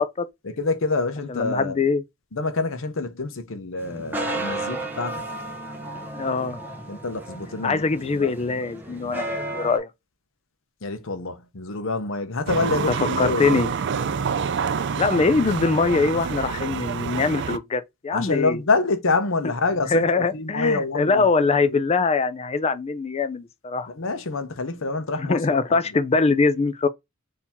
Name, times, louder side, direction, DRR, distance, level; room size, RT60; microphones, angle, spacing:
voice 1, 0.4-1.9 2.3-5.2 6.9-7.9 8.1-8.3 10.8-13.6 18.1-21.3 21.6-21.8 23.9-25.4 25.7-25.8, left 3 dB, 65° left, 0.8 m, -26 dB
voice 2, 1.3-2.0 6.1-6.6 7.6-9.9 13.2-13.7 15.0-18.6 19.9-23.9 25.2-26.9, left 4 dB, 30° left, 0.4 m, -22 dB
sound 1, 3.8-9.8, right 2 dB, 10° right, 0.8 m, -33 dB
sound 2, 12.5-17.6, right 6 dB, 55° right, 0.4 m, -27 dB
4.4 x 2.8 x 3.5 m
head